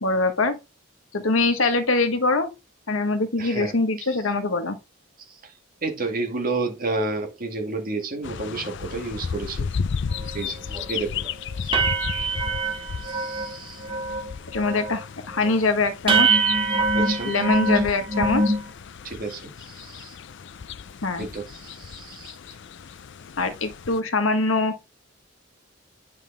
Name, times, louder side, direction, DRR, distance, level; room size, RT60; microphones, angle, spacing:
voice 1, 0.0-0.6 1.1-2.5 2.9-4.8 14.5-16.4 17.3-18.5 21.0-21.2 23.4-24.8, left 3 dB, 80° left, 1.3 m, -23 dB
voice 2, 3.4-4.1 5.3-5.5 5.8-9.7 10.3-10.6 10.9-11.2 11.6-11.8 13.0-13.8 16.9-17.4 19.0-20.2 21.2-22.4, right 3 dB, 45° right, 2.1 m, -31 dB
sound 1, 8.2-24.0, left 6 dB, 60° left, 0.5 m, -34 dB
sound 2, 10.2-10.3 10.7-10.9 11.2-11.3 11.7-13.5 13.8-14.3 14.5-15.0 15.4-15.5 16.1-18.6, right 3 dB, 25° right, 1.7 m, -23 dB
9.6 x 5.3 x 3.4 m
head